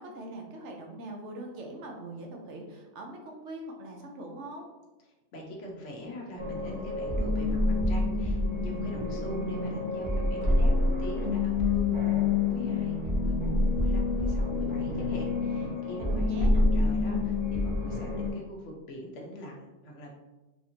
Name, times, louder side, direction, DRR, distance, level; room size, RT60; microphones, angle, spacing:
voice 1, 0.0-4.7 16.0-16.7, right 1 dB, 70° right, 1 dB, 1.0 m, -42 dB
voice 2, 5.3-13.0 13.2-20.1, equal, 75° left, -1 dB, 1.1 m, -43 dB
sound 1, 6.4-18.3, left 2 dB, 25° right, 0.9 m, -27 dB
4.1 x 2.6 x 2.9 m, 1.1 s
omnidirectional pair, 1.3 m